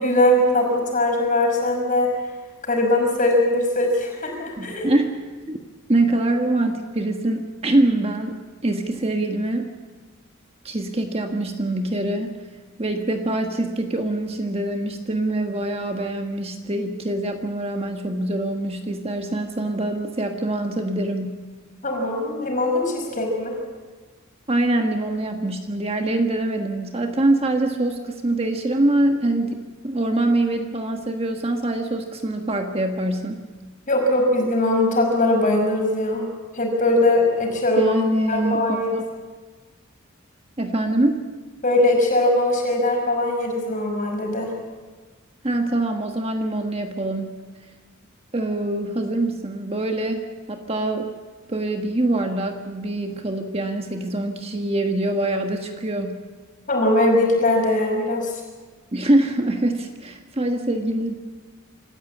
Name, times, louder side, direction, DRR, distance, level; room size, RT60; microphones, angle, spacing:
voice 1, 0.0-2.1 2.7-4.9 21.8-23.5 33.9-36.3 36.5-38.0 38.3-38.9 41.6-44.5 56.7-58.3, left 1 dB, 40° left, 1 dB, 5.5 m, -20 dB
voice 2, 4.6-5.2 5.5-5.6 5.9-9.7 10.6-12.4 12.8-21.4 24.5-33.4 37.8-39.0 40.6-41.2 45.4-47.3 48.3-50.2 50.5-51.1 51.5-56.2 58.9-61.1, right 1 dB, 30° right, 4 dB, 1.4 m, -24 dB
26.0 x 14.0 x 8.5 m, 1.4 s
head